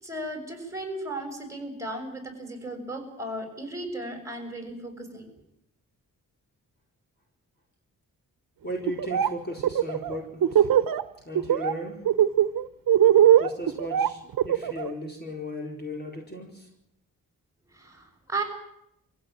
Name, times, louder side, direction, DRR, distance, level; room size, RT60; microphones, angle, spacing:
voice 1, 0.0-5.3 17.7-18.4, right 2 dB, 10° right, 4 dB, 6.5 m, -35 dB
voice 2, 8.6-10.4 11.3-11.9 13.4-14.2 14.4-16.5, left 1 dB, 30° left, 1 dB, 4.5 m, -35 dB
Laughter, 8.9-9.3 9.6-11.0 11.3-11.7 12.0-14.9, right 10 dB, 90° right, 1.0 m, -20 dB
25.5 x 16.0 x 9.2 m, 0.81 s
wide cardioid pair, 125°, 33 cm